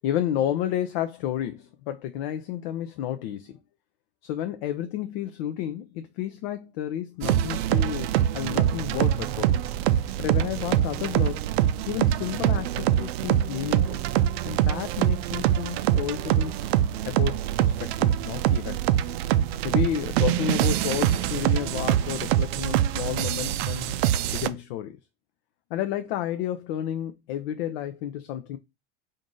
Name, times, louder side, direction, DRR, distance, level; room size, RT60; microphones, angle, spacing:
voice 1, 0.0-3.6 4.2-8.1 8.3-9.6 10.2-11.5 11.9-14.0 14.4-16.7 17.0-18.9 19.6-24.0 24.3-25.0 25.7-28.6, left 11 dB, 55° left, 0.5 m, -31 dB
sound 1, 7.2-24.5, right 11 dB, 65° right, 0.5 m, -24 dB
3.6 x 2.6 x 3.7 m
hypercardioid pair, 90°, 33 cm